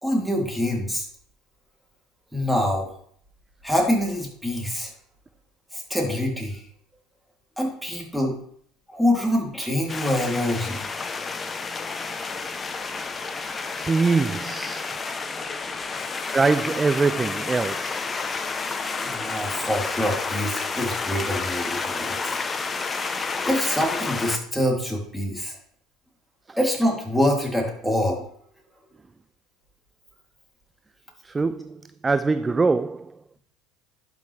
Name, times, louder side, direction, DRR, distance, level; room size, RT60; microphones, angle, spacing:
voice 1, 0.0-1.1 2.3-2.9 3.6-4.9 5.7-6.6 7.6-8.3 8.9-10.9 11.7-11.8 13.4-13.9 19.0-22.4 23.4-25.6 26.6-28.2, left 1 dB, ahead, 3.0 m, -25 dB
sound 1, 9.9-24.4, left 4 dB, 25° left, 0.8 m, -30 dB
voice 2, 13.8-15.2 16.3-18.0 31.2-33.1, right 4 dB, 20° right, 0.3 m, -23 dB
11.5 x 5.6 x 3.4 m
hypercardioid pair, 80°, 0 cm